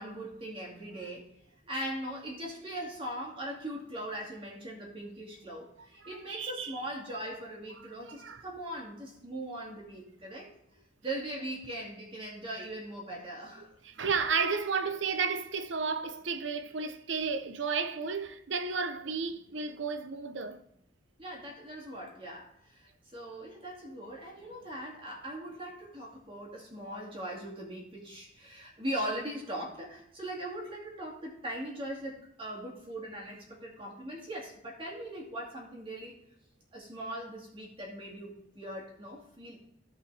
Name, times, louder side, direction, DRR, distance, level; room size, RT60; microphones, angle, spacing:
voice 1, 0.0-1.3 1.7-10.5 11.0-13.7 21.2-36.2 36.7-39.7, right 1 dB, 25° right, 2.3 m, -40 dB
voice 2, 6.0-6.8 7.8-8.4 13.8-20.6, right 5 dB, 70° right, 0.8 m, -33 dB
14.0 x 5.4 x 3.4 m
head